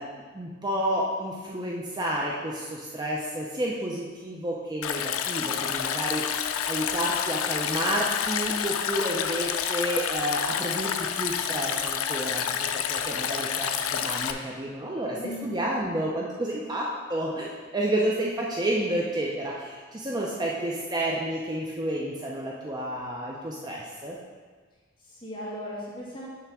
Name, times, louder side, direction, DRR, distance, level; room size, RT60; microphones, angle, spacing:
voice 1, 0.0-6.4 6.6-24.2, right 1 dB, 20° right, -3 dB, 0.5 m, -30 dB
Stream, 4.8-14.3, left 8 dB, 90° left, 0.4 m, -29 dB
voice 2, 15.1-15.6 25.0-26.3, left 1 dB, 25° left, -8 dB, 2.1 m, -37 dB
6.8 x 3.3 x 6.0 m, 1.5 s
head